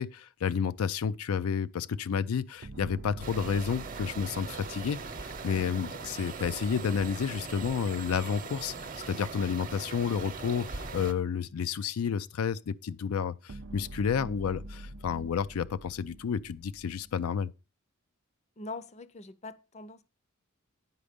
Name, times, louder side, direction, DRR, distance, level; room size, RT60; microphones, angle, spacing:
voice 1, 0.0-8.7 9.1-17.5, left 7 dB, 90° left, 0.4 m, -31 dB
sound 1, 2.6-6.9 13.5-17.2, right 1 dB, 65° right, 0.5 m, -46 dB
sound 2, 3.2-11.1, right 4 dB, 40° right, 0.8 m, -40 dB
voice 2, 18.6-20.0, left 3 dB, 30° left, 0.6 m, -43 dB
9.6 x 5.2 x 5.0 m
head